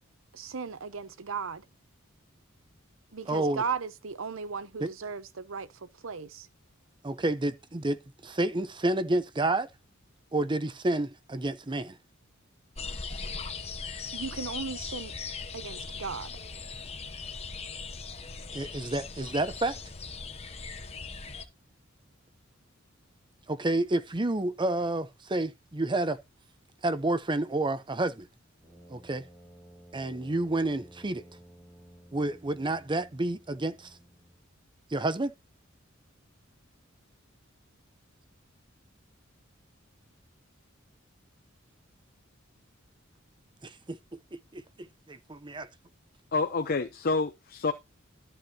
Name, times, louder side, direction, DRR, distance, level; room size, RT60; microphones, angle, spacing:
voice 1, 0.3-1.6 3.1-6.5 14.1-15.1 15.5-16.4, right 5 dB, 75° right, 0.8 m, -36 dB
voice 2, 3.3-3.6 4.8-4.9 7.0-9.7 10.3-11.9 18.5-19.8 23.5-26.2 26.8-28.3 28.9-29.2 29.9-31.2 32.1-33.8 34.9-35.3 43.6-44.0 44.3-44.6 45.1-45.7, right 2 dB, 25° right, 0.7 m, -29 dB
sound 1, 12.8-21.4, left 4 dB, 30° left, 1.2 m, -39 dB
Brass instrument, 28.6-34.5, equal, 10° right, 3.6 m, -54 dB
voice 3, 46.3-47.7, left 4 dB, 50° left, 0.7 m, -28 dB
13.5 x 8.0 x 2.8 m
head